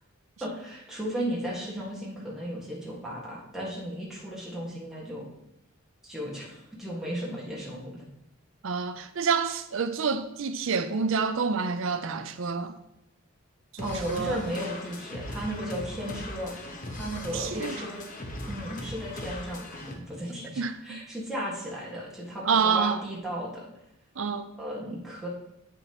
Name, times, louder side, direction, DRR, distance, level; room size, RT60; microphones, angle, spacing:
voice 1, 0.4-5.3 6.0-8.0 13.8-16.6 16.9-18.0 18.5-23.7 24.6-25.3, equal, ahead, 1.6 m, -35 dB
voice 2, 8.6-12.7 13.7-14.4 17.3-17.8 20.6-21.0 22.4-23.0 24.2-24.5, right 5 dB, 65° right, 0.5 m, -28 dB
sound 1, 13.8-19.9, left 1 dB, 40° left, 1.0 m, -39 dB
8.1 x 7.0 x 2.9 m
head